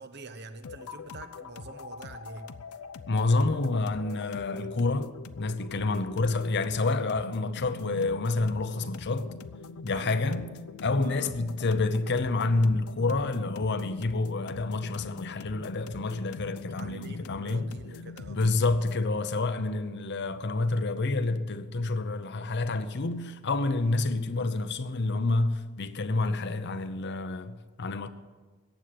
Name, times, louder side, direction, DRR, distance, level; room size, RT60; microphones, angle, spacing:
voice 1, 0.0-2.5 9.9-10.2 11.0-11.3 16.8-18.4 23.8-24.0, right 3 dB, 50° right, 1.1 m, -45 dB
sound 1, 0.6-19.1, left 5 dB, 85° left, 0.6 m, -44 dB
voice 2, 3.1-9.3 9.8-10.5 10.8-17.6 18.3-28.1, left 3 dB, 50° left, 0.8 m, -28 dB
15.0 x 9.2 x 7.7 m
head